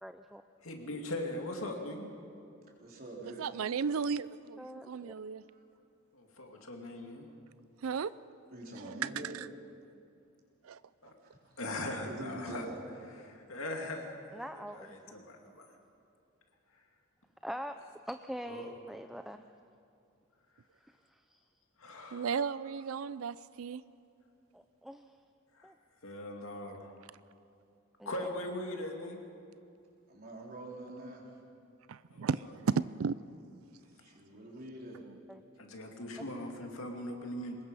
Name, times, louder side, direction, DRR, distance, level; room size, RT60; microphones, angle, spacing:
voice 1, 0.0-0.4 4.6-5.1 14.3-14.9 17.4-17.7 18.1-19.5 20.8-21.4 24.5-25.1 25.6-25.7 28.0-28.3 35.3-35.4, equal, ahead, 7 dB, 0.4 m, -43 dB
voice 2, 0.6-2.1 6.1-7.3 11.0-11.1 11.6-12.7 13.2-14.1 14.5-15.0 16.7-16.8 18.5-18.7 21.8-22.4 25.5-25.7 26.0-27.0 28.1-29.2 32.1-32.3 35.6-37.6, left 1 dB, 80° left, 2 dB, 2.5 m, -40 dB
voice 3, 2.8-3.7 4.9-5.1 5.5-5.6 8.5-9.3 11.2-11.5 11.8-12.8 30.1-31.3 34.0-35.0, right 1 dB, 50° right, -2 dB, 4.0 m, -45 dB
voice 4, 3.4-5.4 7.8-8.1 10.6-10.8 22.1-23.8 31.9-33.2, right 6 dB, 90° right, 17 dB, 0.4 m, -34 dB
23.5 x 20.5 x 5.5 m, 2.5 s
head